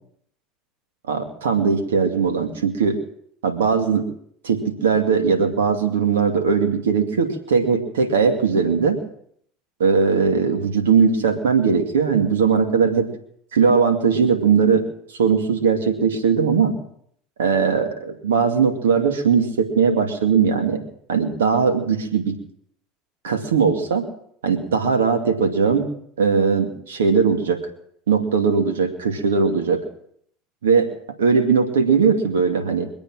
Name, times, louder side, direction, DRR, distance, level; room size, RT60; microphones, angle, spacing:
voice 1, 1.1-3.0 3.4-4.1 4.4-9.0 9.8-13.1 13.5-14.8 15.1-16.7 17.4-20.8 21.1-22.4 23.2-24.1 24.4-25.9 26.2-27.6 28.1-29.8 30.6-30.9 31.2-32.9, right 5 dB, 85° right, 6 dB, 2.3 m, -19 dB
24.0 x 8.7 x 6.3 m, 0.66 s
hypercardioid pair, 75°, 0 cm